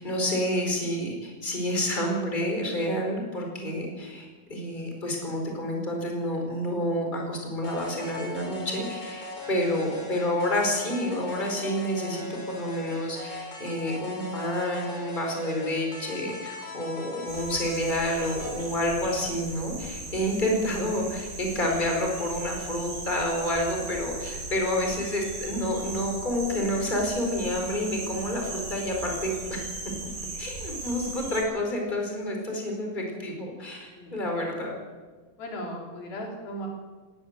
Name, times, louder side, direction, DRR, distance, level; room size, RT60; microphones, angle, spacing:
voice 1, 0.0-29.6 30.4-34.7, left 1 dB, 10° left, 1 dB, 4.6 m, -29 dB
sound 1, 7.6-18.7, left 1 dB, 35° left, 6.4 m, -40 dB
sound 2, 17.3-31.4, right 2 dB, 65° right, 9.4 m, -38 dB
voice 2, 35.4-36.7, equal, 85° left, 0 dB, 5.8 m, -37 dB
18.5 x 18.5 x 8.1 m, 1.3 s
omnidirectional pair, 4.1 m